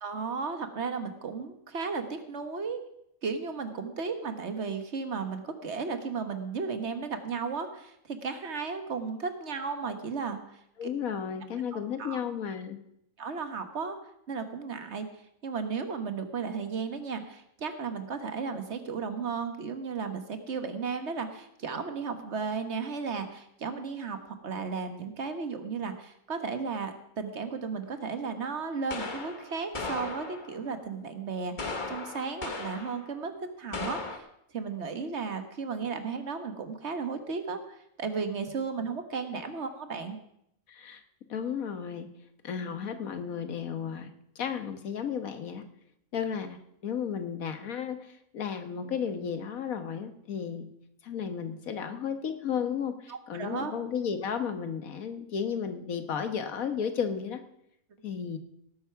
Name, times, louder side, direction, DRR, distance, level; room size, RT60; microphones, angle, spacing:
voice 1, 0.0-2.8 3.2-10.9 11.7-12.2 13.2-14.0 14.3-15.1 15.4-33.3 33.6-34.3 34.5-40.2 53.1-53.8, right 5 dB, 55° right, 8 dB, 1.6 m, -34 dB
voice 2, 10.8-12.8 40.7-41.0 41.3-42.1 42.4-44.1 44.3-45.7 46.1-50.7 51.0-57.4 58.0-58.4, left 7 dB, 85° left, 8 dB, 1.6 m, -33 dB
sound 1, 27.9-28.0 28.9-30.7 31.6-33.1 33.7-34.2, left 3 dB, 35° left, 1.3 m, -37 dB
18.0 x 8.2 x 5.8 m, 0.77 s
omnidirectional pair, 1.4 m